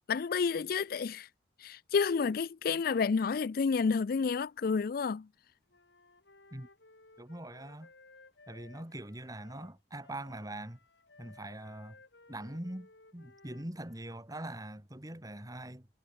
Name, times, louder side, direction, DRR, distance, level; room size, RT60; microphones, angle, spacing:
voice 1, 0.1-1.3 1.6-5.3, left 5 dB, 55° left, 0.4 m, -30 dB
Wind instrument woodwind instrument, 5.7-14.2, left 3 dB, 85° left, 4.8 m, -59 dB
voice 2, 7.2-7.9 8.5-10.8 11.2-12.0 12.3-15.9, right 1 dB, 20° right, 2.7 m, -43 dB
head